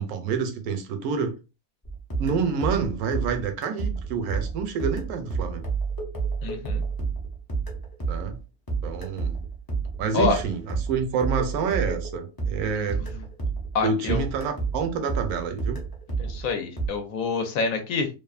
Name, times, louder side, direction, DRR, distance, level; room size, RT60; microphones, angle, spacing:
voice 1, 0.0-1.4 2.2-5.7 8.1-8.4 8.8-9.4 10.0-13.0 13.8-15.8, right 5 dB, 80° right, 1.0 m, -28 dB
sound 1, 1.8-13.8 14.1-16.9, right 4 dB, 25° left, 0.4 m, -30 dB
voice 2, 6.4-6.8 10.1-10.4 12.8-12.9 13.7-14.3 16.2-18.1, left 4 dB, 70° left, 1.0 m, -27 dB
2.7 x 2.4 x 2.3 m
omnidirectional pair, 1.6 m